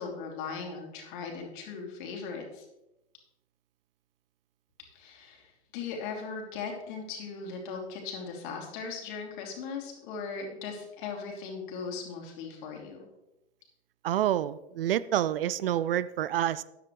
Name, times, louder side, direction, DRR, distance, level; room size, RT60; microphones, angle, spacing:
voice 1, 0.0-2.7 4.9-13.1, left 5 dB, 50° left, 1 dB, 3.1 m, -38 dB
voice 2, 14.0-16.6, right 11 dB, 60° right, 17 dB, 0.5 m, -28 dB
13.0 x 10.5 x 3.2 m, 0.95 s
figure-of-eight pair, 100°, 33 cm